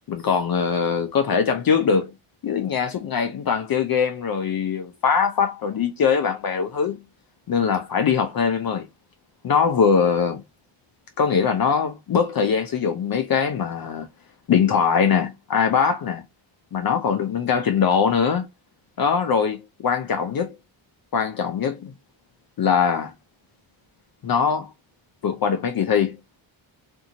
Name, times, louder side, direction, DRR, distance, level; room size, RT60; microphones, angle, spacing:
voice 1, 0.1-2.1 2.4-7.0 7.5-8.9 9.4-10.4 11.2-14.1 14.5-16.2 16.7-18.5 19.0-20.5 21.1-21.9 22.6-23.1 24.2-24.7 25.2-26.2, left 6 dB, 45° left, 0.6 m, -22 dB
2.7 x 2.5 x 2.7 m
cardioid pair, 90°, 50 cm